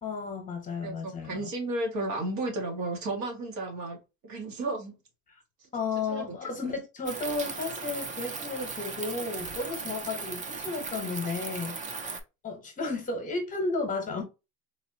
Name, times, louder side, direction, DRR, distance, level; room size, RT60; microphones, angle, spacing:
voice 1, 0.0-1.5 5.7-12.1 12.4-14.2, left 3 dB, 20° left, 1.0 m, -33 dB
voice 2, 0.8-4.0 4.2-5.0 6.1-6.4 6.6-6.7, right 2 dB, 65° right, 1.7 m, -33 dB
sound 1, 7.0-12.2, right 4 dB, 20° right, 0.4 m, -37 dB
4.0 x 2.8 x 2.7 m
cardioid pair, 175°, 36 cm